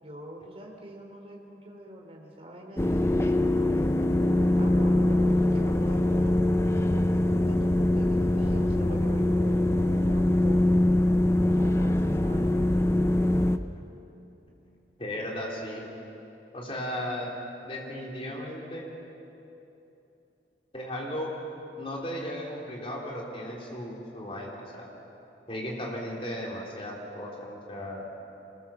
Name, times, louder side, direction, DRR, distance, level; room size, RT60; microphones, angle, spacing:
voice 1, 0.0-4.2 4.6-6.4 6.7-10.9 11.4-12.9, right 1 dB, 35° right, 1 dB, 3.2 m, -44 dB
sound 1, 2.8-13.6, left 1 dB, 15° left, 0.6 m, -23 dB
voice 2, 15.0-15.8 16.5-17.3 17.6-18.9 20.7-21.3 21.8-24.9 25.5-28.1, left 1 dB, 30° left, -2 dB, 3.6 m, -35 dB
25.0 x 20.0 x 7.3 m, 3.0 s
head